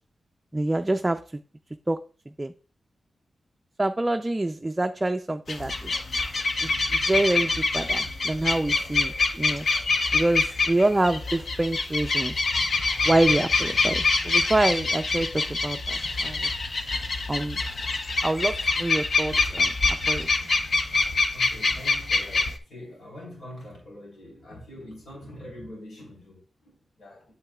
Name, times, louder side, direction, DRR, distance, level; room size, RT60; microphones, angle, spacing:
voice 1, 0.5-1.2 1.9-2.0 2.4-2.5 3.8-5.9 6.6-9.7 10.1-12.3 13.0-16.5 17.3-17.6 18.2-20.3, right 2 dB, 15° right, 0.3 m, -26 dB
sound 1, 5.5-22.6, left 3 dB, 55° left, 0.7 m, -25 dB
voice 2, 21.3-27.4, left 1 dB, 85° left, 3.8 m, -44 dB
8.7 x 7.7 x 2.3 m
wide cardioid pair, 115°, 0 cm